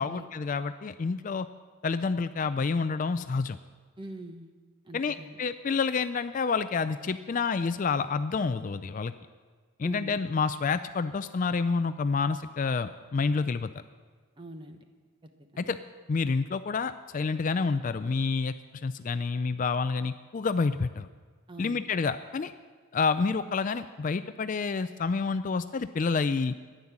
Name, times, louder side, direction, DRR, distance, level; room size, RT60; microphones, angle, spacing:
voice 1, 0.0-1.5 1.8-3.6 4.9-9.1 9.8-13.7 15.6-15.8 16.1-18.5 18.8-21.1 21.6-22.5 22.9-26.5, left 4 dB, 35° left, 12 dB, 0.3 m, -28 dB
voice 2, 4.0-4.5 4.8-5.4 9.8-10.2 14.4-14.8 15.5-15.7 21.5-21.8, right 1 dB, 20° right, 6 dB, 1.0 m, -43 dB
13.5 x 10.5 x 7.2 m, 1.5 s
head